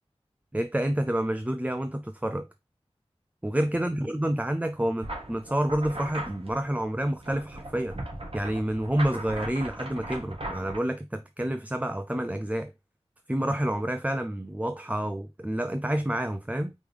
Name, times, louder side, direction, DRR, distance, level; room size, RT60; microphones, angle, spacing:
voice 1, 0.5-2.5 3.4-8.0 8.3-12.7 13.3-16.7, right 1 dB, 15° right, 0.5 m, -28 dB
sound 1, 5.0-10.8, right 1 dB, 60° right, 1.7 m, -38 dB
5.3 x 3.1 x 3.2 m
wide cardioid pair, 45°, 11 cm